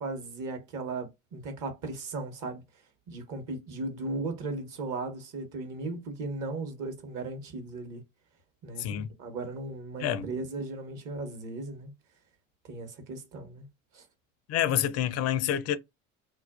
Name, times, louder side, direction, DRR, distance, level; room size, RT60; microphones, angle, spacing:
voice 1, 0.0-2.6 3.1-8.0 8.6-11.9 12.7-13.6 13.9-14.0, right 3 dB, 50° right, 1.0 m, -37 dB
voice 2, 8.8-9.1 10.0-10.3 14.5-15.8, left 10 dB, 40° left, 0.4 m, -28 dB
2.5 x 2.2 x 2.3 m
hypercardioid pair, 75°, 39 cm